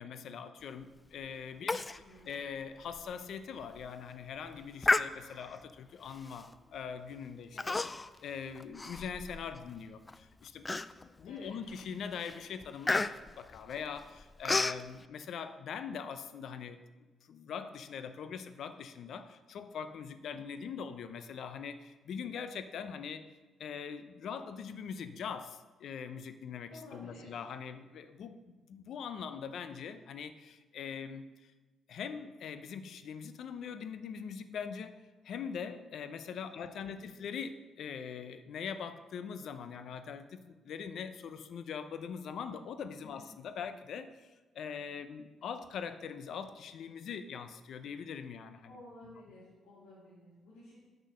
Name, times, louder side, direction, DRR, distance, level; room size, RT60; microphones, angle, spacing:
voice 1, 0.0-7.6 8.2-10.7 11.0-23.3 23.6-31.5 31.9-34.9 35.2-49.2, left 6 dB, 70° left, 11 dB, 0.6 m, -42 dB
Human voice, 1.7-2.0 2.3-2.4 2.9-3.0 3.6-3.9 4.8-5.6 6.3-6.5 7.6-8.2 8.6-9.6 10.1-10.2 10.7-11.2 11.7-11.9 12.2-14.8, left 3 dB, 20° left, 0.3 m, -32 dB
voice 2, 7.5-7.8 11.2-11.5 20.3-20.4 26.7-27.3 36.5-36.7 37.0-37.1 43.0-43.2 48.6-50.8, left 2 dB, 85° left, -7 dB, 2.5 m, -53 dB
6.7 x 6.2 x 6.4 m, 1.2 s
cardioid pair, 90°, 0 cm